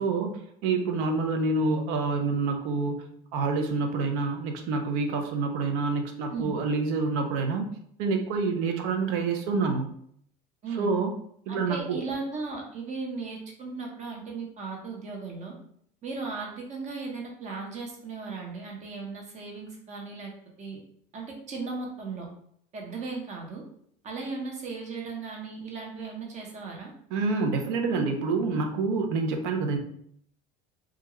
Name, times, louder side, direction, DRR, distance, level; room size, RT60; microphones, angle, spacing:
voice 1, 0.0-7.7 8.0-9.9 10.8-11.2 11.5-12.0 27.1-29.8, right 4 dB, 75° right, 5 dB, 0.5 m, -27 dB
voice 2, 11.5-15.5 16.0-20.3 20.6-20.8 21.1-22.3 22.7-23.6 24.0-26.9, right 4 dB, 35° right, 0 dB, 0.8 m, -36 dB
2.4 x 2.2 x 2.9 m, 0.67 s
supercardioid pair, 120°, 20 cm